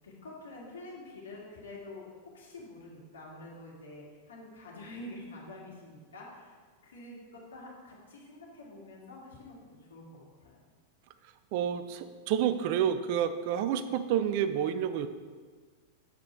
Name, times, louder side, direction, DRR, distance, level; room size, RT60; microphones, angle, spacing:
voice 1, 0.0-2.1 2.3-6.6 6.8-9.6 9.9-10.6, left 2 dB, 75° left, -3 dB, 1.9 m, -47 dB
voice 2, 11.5-15.1, right 9 dB, 55° right, 11 dB, 0.5 m, -29 dB
7.4 x 5.3 x 4.6 m, 1.5 s
figure-of-eight pair, 95°, 0 cm